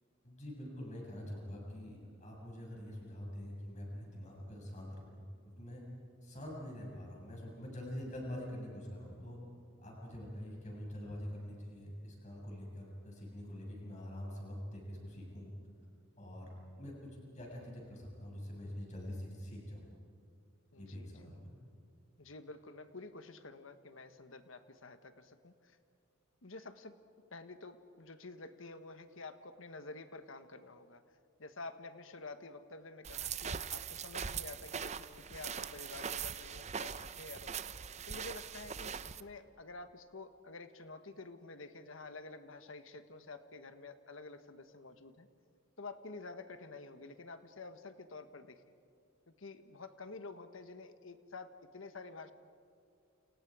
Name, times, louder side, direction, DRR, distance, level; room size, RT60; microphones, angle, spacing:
voice 1, 0.2-5.2 5.6-5.8 6.2-9.4 9.8-15.5 16.2-16.5 16.8-19.9 20.8-21.6, equal, 35° left, -1 dB, 6.9 m, -45 dB
voice 2, 20.7-21.2 22.2-25.8 26.4-26.9 27.3-31.0 31.4-37.6 38.1-45.3 45.8-48.6 49.4-52.3, left 3 dB, 75° left, 9 dB, 1.4 m, -49 dB
sound 1, 33.0-39.2, right 7 dB, 35° right, 0.6 m, -41 dB
29.5 x 29.0 x 4.9 m, 2.4 s
head